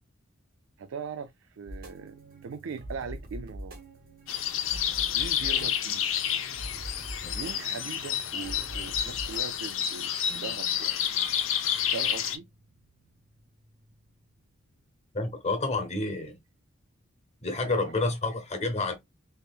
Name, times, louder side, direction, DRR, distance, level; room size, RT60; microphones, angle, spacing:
voice 1, 0.8-3.8 5.1-6.3 7.3-11.2 11.9-12.5 17.6-17.9, right 5 dB, 75° right, 0.4 m, -40 dB
sound 1, 1.7-14.2, right 1 dB, 50° right, 0.9 m, -44 dB
sound 2, 4.3-12.4, left 9 dB, 85° left, 0.6 m, -29 dB
voice 2, 15.1-16.4 17.4-19.0, left 2 dB, 35° left, 0.9 m, -29 dB
3.5 x 3.3 x 2.4 m
head